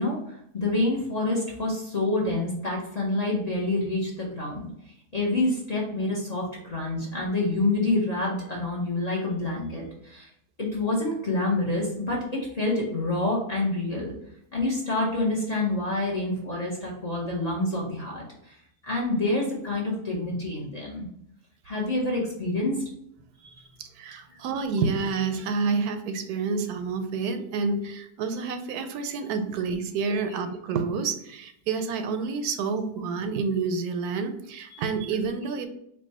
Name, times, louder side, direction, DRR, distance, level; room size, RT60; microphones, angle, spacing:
voice 1, 0.0-4.7 5.1-10.3 10.6-14.1 14.5-18.6 18.8-21.1 21.6-22.8 23.4-23.6 30.2-30.3 34.7-34.8, left 2 dB, 35° left, -4 dB, 0.7 m, -27 dB
voice 2, 23.8-35.7, right 4 dB, 80° right, 7 dB, 1.1 m, -29 dB
4.5 x 2.2 x 4.1 m, 0.74 s
omnidirectional pair, 1.6 m